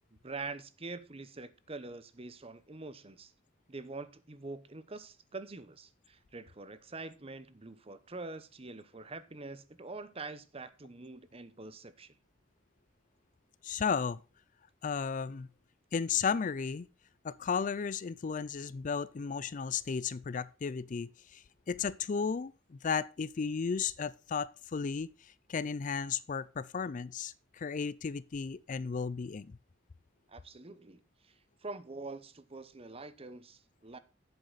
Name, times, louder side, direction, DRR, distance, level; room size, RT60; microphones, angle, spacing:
voice 1, 0.1-3.3 3.7-12.1 30.3-31.3 31.6-34.0, right 3 dB, 30° right, 0.9 m, -45 dB
voice 2, 13.6-14.2 14.8-15.5 15.9-16.9 17.2-29.6, left 6 dB, 40° left, 0.4 m, -34 dB
11.0 x 8.0 x 4.0 m
head